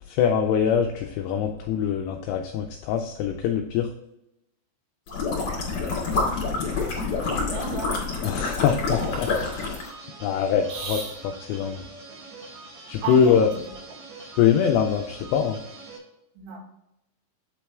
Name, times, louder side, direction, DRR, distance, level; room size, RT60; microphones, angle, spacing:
voice 1, 0.1-3.9 8.2-9.8 10.2-11.0 11.5-11.8 12.9-13.5 14.4-15.6, left 8 dB, 85° left, 4 dB, 2.4 m, -23 dB
sound 1, 5.1-9.9, left 4 dB, 40° left, 3.0 m, -27 dB
voice 2, 7.5-8.0 10.7-11.2 13.0-13.5 16.4-16.6, right 4 dB, 90° right, -3 dB, 4.5 m, -34 dB
sound 2, 8.9-16.0, right 3 dB, 65° right, 1.8 m, -44 dB
8.6 x 4.3 x 3.5 m, 0.85 s
omnidirectional pair, 5.3 m